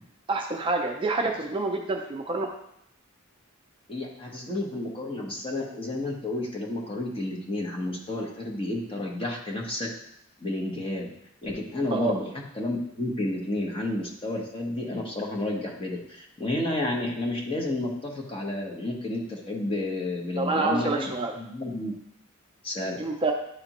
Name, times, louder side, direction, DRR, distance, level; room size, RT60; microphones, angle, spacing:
voice 1, 0.3-2.5 11.9-12.2 20.4-21.3 23.0-23.3, right 3 dB, 25° right, 2 dB, 0.5 m, -27 dB
voice 2, 3.9-9.9 10.4-11.1 11.4-21.9 22.6-23.0, left 1 dB, 25° left, 0 dB, 1.0 m, -31 dB
9.8 x 3.3 x 3.0 m, 0.77 s
head